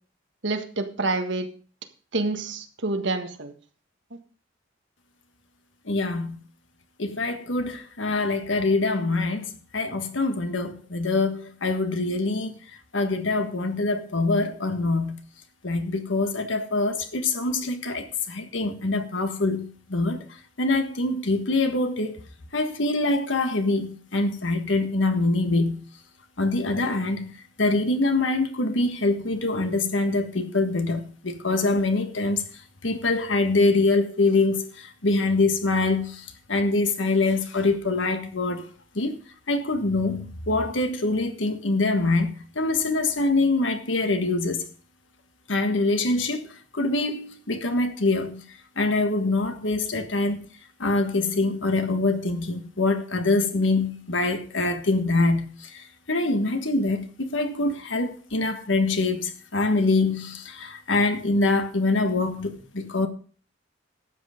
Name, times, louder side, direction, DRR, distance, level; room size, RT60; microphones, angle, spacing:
voice 1, 0.4-1.5 2.1-3.5, right 3 dB, 70° right, 1.6 m, -27 dB
voice 2, 5.9-6.4 7.0-12.5 12.9-15.2 15.6-20.2 20.6-22.2 22.5-25.8 26.4-27.3 27.6-32.4 32.8-38.6 38.9-44.6 45.5-46.5 46.7-48.4 48.8-50.4 50.8-63.1, left 2 dB, 85° left, 1.5 m, -24 dB
12.5 x 8.0 x 5.1 m
head